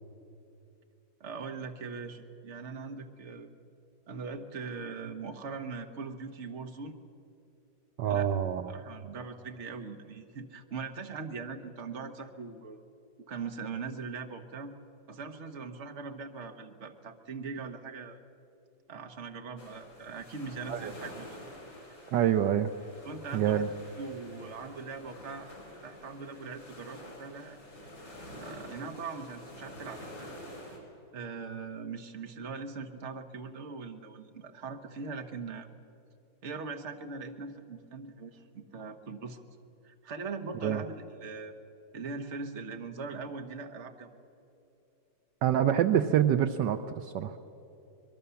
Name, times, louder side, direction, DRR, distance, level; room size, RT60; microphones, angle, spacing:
voice 1, 1.2-3.5 4.1-7.0 8.0-8.3 8.7-12.8 13.3-14.7 15.1-18.2 18.9-21.4 23.0-23.7 24.0-25.5 25.8-27.6 28.4-30.3 31.1-35.7 36.4-39.4 39.8-41.5 41.9-44.2, right 4 dB, 40° right, 6 dB, 1.4 m, -41 dB
voice 2, 8.0-8.7 20.7-20.9 22.1-22.7 23.3-23.7 40.6-40.8 45.4-47.4, right 10 dB, 75° right, 9 dB, 1.3 m, -26 dB
sound 1, 19.6-30.8, left 1 dB, 80° left, 5.8 m, -48 dB
25.0 x 22.0 x 7.0 m, 2.8 s
omnidirectional pair, 2.0 m